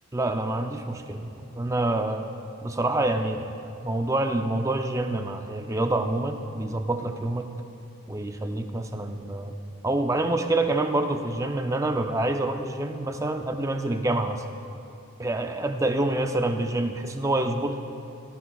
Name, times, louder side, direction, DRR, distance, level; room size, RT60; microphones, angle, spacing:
voice 1, 0.1-2.3 2.6-3.5 3.8-7.5 8.1-9.6 9.8-14.4 15.2-17.8, right 2 dB, 15° right, 6 dB, 0.4 m, -27 dB
18.0 x 15.0 x 2.3 m, 2.7 s
head